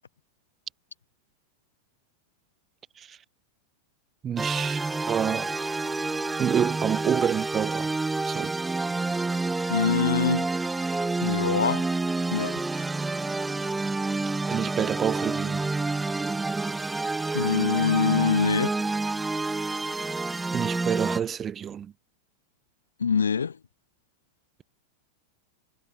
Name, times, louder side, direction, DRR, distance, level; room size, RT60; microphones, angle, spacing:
voice 1, 4.2-5.5 6.4-7.9 8.2-8.6 14.5-15.7 20.5-21.9, right 8 dB, 25° right, 1.4 m, -28 dB
sound 1, 4.4-21.2, right 3 dB, 10° right, 2.1 m, -28 dB
voice 2, 9.7-10.5 11.2-11.9 12.3-12.6 17.3-18.7 23.0-23.6, left 6 dB, 70° left, 1.3 m, -24 dB
figure-of-eight pair, 90°, 0 cm